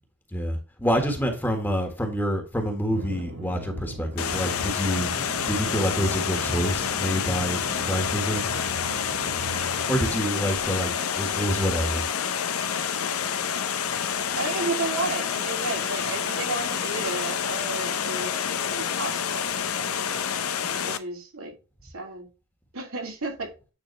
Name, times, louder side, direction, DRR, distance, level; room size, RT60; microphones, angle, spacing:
voice 1, 0.3-5.1 5.5-7.6 7.9-8.4 9.9-12.1, equal, 10° left, 1.5 m, -27 dB
sound 1, 2.9-10.2, right 1 dB, 55° right, 1.2 m, -38 dB
Water, 4.2-21.0, left 7 dB, 85° left, 0.7 m, -28 dB
voice 2, 14.3-19.5 20.8-21.5 21.9-22.3 22.7-23.5, right 3 dB, 75° right, 2.7 m, -32 dB
9.3 x 4.0 x 3.2 m
head